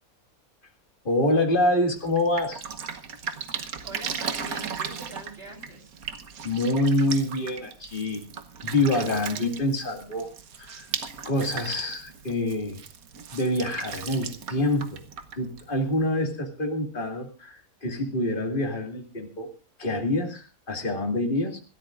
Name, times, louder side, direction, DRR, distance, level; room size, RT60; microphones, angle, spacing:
voice 1, 1.0-2.6 6.4-8.2 8.6-10.3 10.6-10.9 11.2-12.8 13.3-15.0 15.3-19.5 19.8-21.6, left 1 dB, 35° left, 4 dB, 2.4 m, -26 dB
Drip, 2.0-16.0, right 7 dB, 80° right, 1.6 m, -37 dB
voice 2, 3.8-5.9, right 2 dB, 45° right, 3 dB, 4.4 m, -42 dB
26.0 x 13.0 x 2.5 m, 0.33 s
omnidirectional pair, 1.5 m